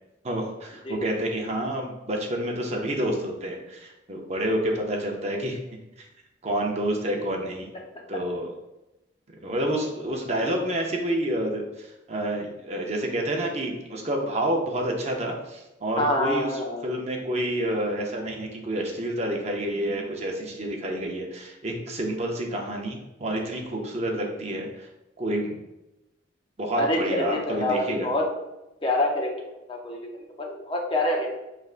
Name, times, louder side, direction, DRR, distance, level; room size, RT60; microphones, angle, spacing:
voice 1, 0.2-5.6 6.0-6.1 6.4-7.7 8.1-8.5 9.4-24.9 25.2-25.6 26.6-28.1, right 1 dB, 35° right, 0 dB, 0.6 m, -29 dB
voice 2, 16.0-16.8 26.8-28.3 28.8-29.3 29.7-30.0 30.4-31.3, left 1 dB, 30° left, -1 dB, 0.6 m, -26 dB
5.1 x 3.2 x 2.4 m, 0.95 s
head